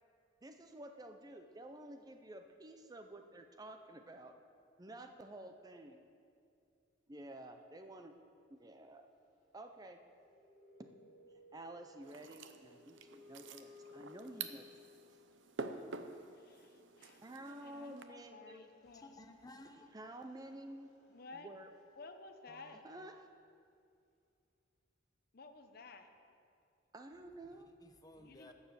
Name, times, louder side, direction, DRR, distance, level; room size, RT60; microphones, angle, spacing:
voice 1, 0.4-4.3 4.8-6.0 7.1-8.2 8.5-9.1 9.5-10.0 10.8-10.9 11.3-14.7 17.2-18.6 19.9-20.9 21.3-21.7 22.5-23.3 26.9-27.7, right 1 dB, 20° right, 6 dB, 0.5 m, -51 dB
sound 1, 10.0-15.3 17.2-17.3 17.5-23.0, left 3 dB, ahead, 3.4 m, -62 dB
sound 2, 12.0-18.0, right 4 dB, 65° right, 0.7 m, -49 dB
voice 2, 16.3-19.1 21.1-21.5 22.0-22.8 25.3-26.1 28.2-28.5, left 3 dB, 50° left, 7 dB, 0.8 m, -54 dB
voice 3, 18.8-19.9 27.5-28.5, left 2 dB, 20° left, 6 dB, 0.8 m, -56 dB
12.0 x 7.2 x 7.1 m, 2.4 s
head